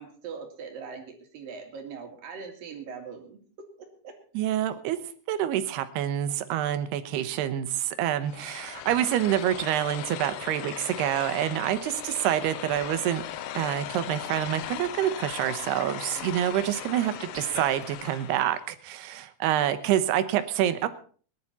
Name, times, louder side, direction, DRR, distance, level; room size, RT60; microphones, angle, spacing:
voice 1, 0.0-3.4 4.0-4.1 4.9-5.0, right 5 dB, 60° right, 4 dB, 3.8 m, -41 dB
voice 2, 4.3-5.0 5.3-13.2 13.5-20.9, right 11 dB, 85° right, 11 dB, 3.0 m, -27 dB
sound 1, 8.3-18.6, left 11 dB, 75° left, 2.3 m, -38 dB
19.5 x 11.0 x 4.3 m, 0.42 s
omnidirectional pair, 4.7 m